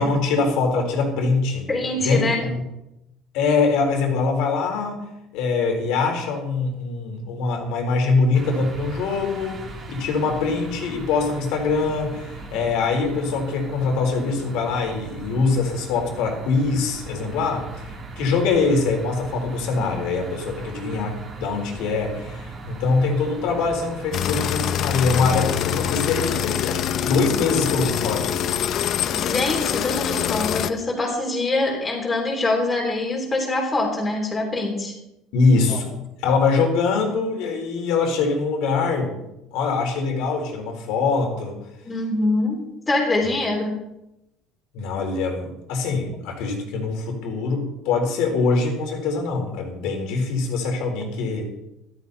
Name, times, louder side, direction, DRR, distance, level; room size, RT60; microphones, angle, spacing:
voice 1, 0.0-1.7 2.0-2.6 3.3-5.1 5.3-28.5 35.3-36.0 36.2-39.2 39.5-41.6 44.7-51.5, left 4 dB, 75° left, 2 dB, 3.9 m, -23 dB
voice 2, 1.7-2.5 29.1-34.9 35.7-35.8 41.8-43.8, left 2 dB, 15° left, -2 dB, 3.5 m, -24 dB
sound 1, 8.3-26.5, right 3 dB, 35° right, 3.1 m, -38 dB
sound 2, 24.1-30.7, left 10 dB, 50° left, 0.7 m, -24 dB
13.5 x 13.0 x 4.2 m, 0.90 s
cardioid pair, 130°, 0 cm